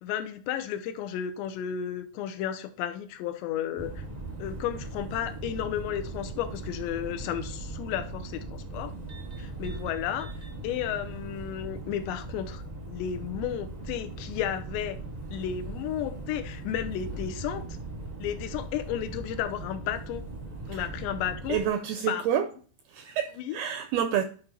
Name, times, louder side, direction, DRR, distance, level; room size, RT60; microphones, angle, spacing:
voice 1, 0.0-4.0 4.4-8.9 9.4-15.0 15.3-17.6 18.2-20.2 20.7-21.6 22.1-22.2 23.4-23.6, left 10 dB, 90° left, 2.9 m, -33 dB
sound 1, 3.8-21.7, right 2 dB, 60° right, 0.4 m, -39 dB
voice 2, 21.5-22.5 22.9-24.2, right 9 dB, 85° right, 2.2 m, -28 dB
11.0 x 5.3 x 4.4 m
omnidirectional pair, 5.1 m